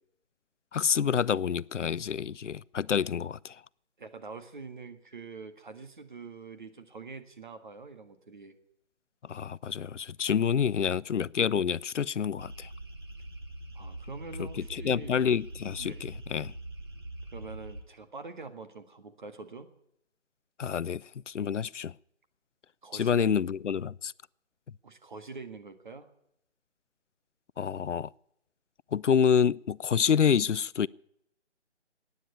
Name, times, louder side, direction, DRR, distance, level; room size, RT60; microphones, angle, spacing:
voice 1, 0.7-3.6 9.2-12.7 14.4-16.5 20.6-22.0 22.9-24.1 27.6-28.1 28.9-30.9, left 7 dB, 80° left, 0.5 m, -28 dB
voice 2, 4.0-8.5 13.7-15.1 15.8-16.1 17.3-19.7 22.8-23.4 24.8-26.1, right 4 dB, 45° right, 1.6 m, -45 dB
sound 1, 12.4-17.8, right 1 dB, 20° right, 1.0 m, -43 dB
15.5 x 9.6 x 9.7 m
figure-of-eight pair, 160°, 35 cm